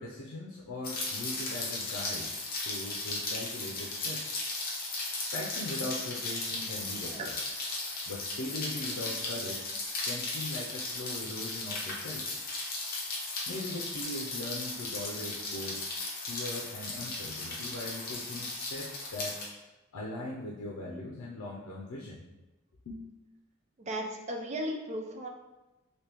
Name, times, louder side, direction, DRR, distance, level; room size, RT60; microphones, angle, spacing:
voice 1, 0.0-2.3 2.6-4.4 5.3-7.5 8.1-9.7 10.0-12.3 13.5-16.0 16.2-19.4 19.9-22.2 22.8-23.0, left 1 dB, 90° left, -3 dB, 0.5 m, -40 dB
Rain, 0.8-19.5, left 2 dB, 45° left, 0.7 m, -36 dB
voice 2, 23.8-25.3, right 1 dB, 30° right, 2 dB, 0.4 m, -36 dB
3.4 x 2.7 x 2.9 m, 1.0 s
head